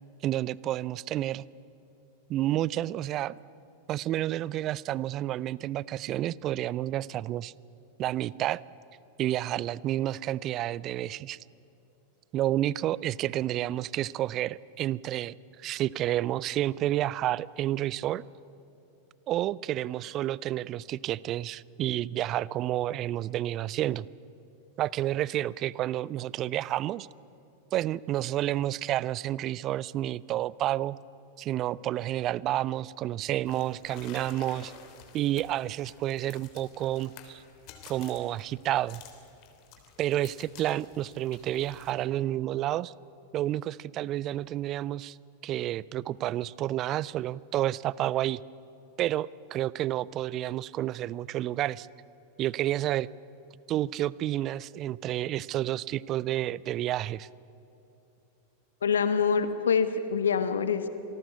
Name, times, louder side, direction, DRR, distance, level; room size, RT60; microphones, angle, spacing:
voice 1, 0.2-1.4 2.3-3.3 3.9-7.5 8.0-8.6 9.2-11.4 12.3-18.2 19.3-24.1 24.8-27.1 27.7-31.0 31.4-34.7 35.1-37.4 37.9-39.0 40.0-42.9 43.3-45.2 45.4-48.4 49.0-51.9 52.4-53.1 53.7-57.3, right 13 dB, 35° right, 23 dB, 0.5 m, -30 dB
sound 1, 33.4-41.9, left 7 dB, 40° left, 3.2 m, -51 dB
voice 2, 58.8-60.9, left 6 dB, 65° left, 11 dB, 1.3 m, -25 dB
26.0 x 19.0 x 8.3 m, 2.8 s
figure-of-eight pair, 90°, 0 cm